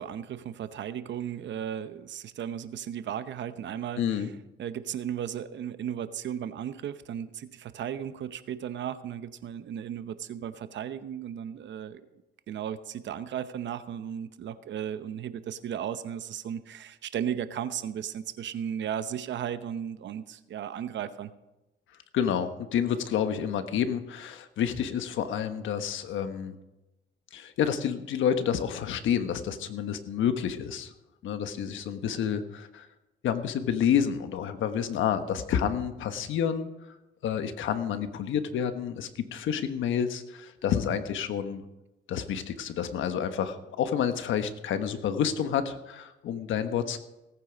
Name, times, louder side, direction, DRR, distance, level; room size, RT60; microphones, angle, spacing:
voice 1, 0.0-4.3 4.6-12.1 12.5-21.3, right 9 dB, 65° right, 12 dB, 0.8 m, -35 dB
voice 2, 4.0-4.3 22.1-26.6 27.3-30.9 31.2-32.9 33.2-36.7 37.2-41.6 42.1-47.0, left 8 dB, 80° left, 9 dB, 1.2 m, -29 dB
17.5 x 9.3 x 5.2 m, 0.98 s
cardioid pair, 90°, 20 cm